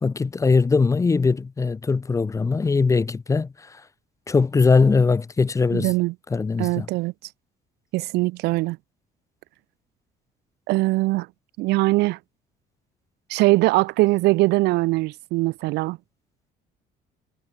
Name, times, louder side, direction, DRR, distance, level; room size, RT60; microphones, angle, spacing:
voice 1, 0.0-3.8 4.3-5.9 6.3-6.9, left 4 dB, 20° left, 0.5 m, -21 dB
voice 2, 5.7-6.1 6.6-7.1 7.9-8.8 10.7-11.3 11.6-12.2 13.3-16.0, right 21 dB, 85° right, 0.5 m, -21 dB
cardioid pair, 110°, 17 cm